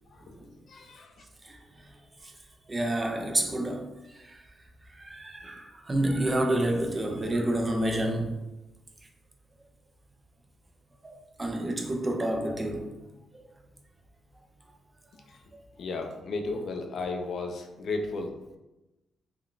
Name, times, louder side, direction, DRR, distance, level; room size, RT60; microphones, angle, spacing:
voice 1, 0.7-1.1 15.3-15.4 15.8-18.6, left 3 dB, 60° left, 0.4 m, -34 dB
voice 2, 2.7-4.4 5.0-8.4 11.0-13.0 13.3-13.4 14.7-14.8, right 1 dB, 20° right, 0.4 m, -29 dB
3.7 x 2.2 x 2.4 m
cardioid pair, 120°, 0 cm